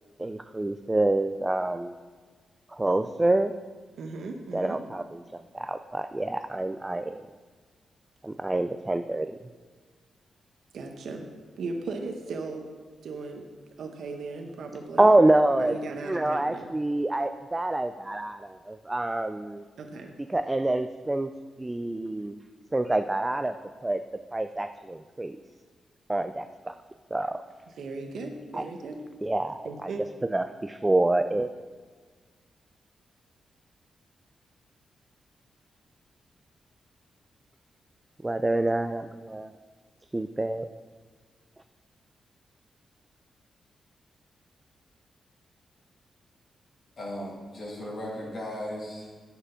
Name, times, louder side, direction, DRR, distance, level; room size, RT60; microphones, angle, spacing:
voice 1, 0.2-1.9 2.7-3.5 4.5-7.2 8.2-9.4 15.0-15.8 16.1-19.6 20.3-21.3 21.6-22.4 22.7-23.5 23.8-24.0 24.3-25.4 26.1-26.7 27.1-27.4 28.5-28.6 29.2-29.9 30.3-31.5 38.2-39.5 40.1-40.7, right 2 dB, 15° right, 8 dB, 0.3 m, -26 dB
voice 2, 3.9-4.8 10.7-11.3 11.6-12.6 13.0-13.5 13.8-15.1 15.6-16.7 19.8-20.1 27.8-29.0 29.6-30.0, right 3 dB, 75° right, 3 dB, 0.9 m, -37 dB
voice 3, 47.0-49.1, left 1 dB, 50° left, -6 dB, 2.6 m, -36 dB
9.6 x 5.9 x 5.7 m, 1.5 s
cardioid pair, 110°, 0 cm